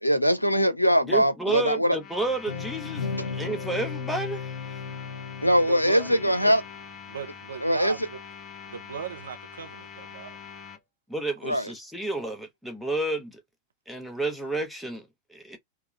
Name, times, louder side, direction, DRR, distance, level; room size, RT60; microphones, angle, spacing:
voice 1, 0.0-2.0 5.4-6.6 7.6-8.0 11.4-11.7, equal, 85° left, 0.5 m, -22 dB
voice 2, 1.1-4.5 11.1-13.4 13.9-15.6, right 2 dB, ahead, 1.0 m, -31 dB
sound 1, 2.0-10.8, left 7 dB, 30° left, 0.8 m, -44 dB
sound 2, 2.5-6.7, left 5 dB, 65° left, 0.9 m, -35 dB
voice 3, 5.7-6.6 7.1-8.2 8.7-10.4, right 6 dB, 70° right, 0.6 m, -37 dB
3.5 x 2.2 x 3.2 m
figure-of-eight pair, 90°, 0 cm